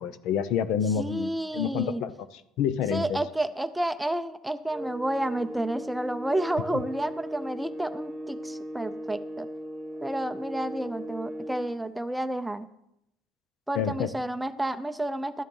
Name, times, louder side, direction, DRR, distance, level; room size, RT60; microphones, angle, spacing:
voice 1, 0.0-3.2 13.7-14.1, left 8 dB, 65° left, 13 dB, 0.7 m, -28 dB
voice 2, 1.0-2.0 2.9-9.5 10.0-12.7 13.7-15.4, right 1 dB, 5° right, 10 dB, 0.5 m, -30 dB
sound 1, 4.7-11.7, equal, 20° right, 1.1 m, -38 dB
13.0 x 9.7 x 5.4 m, 0.80 s
cardioid pair, 155°, 0 cm